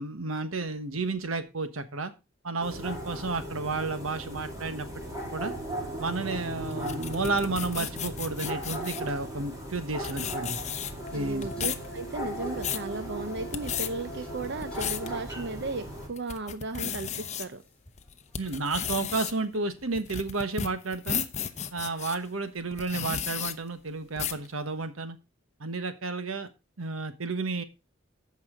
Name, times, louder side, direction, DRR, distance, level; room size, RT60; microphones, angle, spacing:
voice 1, 0.0-2.1 2.4-4.9 5.3-5.5 6.0-10.6 11.1-11.5 18.4-21.2 21.7-25.2 25.6-26.5 26.8-27.6, right 3 dB, 85° right, 10 dB, 1.2 m, -32 dB
sound 1, 2.6-16.1, right 1 dB, 15° right, 3.5 m, -38 dB
sound 2, 6.7-9.1 9.8-9.9 10.0-11.1 11.4-11.9 12.3-12.9 13.4-13.9 14.4-15.1 15.6-15.7 16.2-17.5 18.0-22.2 22.7-23.5 24.2-24.5, left 8 dB, 35° left, 0.8 m, -34 dB
sound 3, 11.0-15.7 16.1-16.5 16.8-18.7 19.4-19.6 21.4-21.9 22.1-22.2 22.9-23.5 23.8-23.9, right 1 dB, 5° left, 3.9 m, -45 dB
voice 2, 11.1-17.6, right 3 dB, 60° right, 10 dB, 0.7 m, -35 dB
14.5 x 5.5 x 3.7 m, 0.27 s
head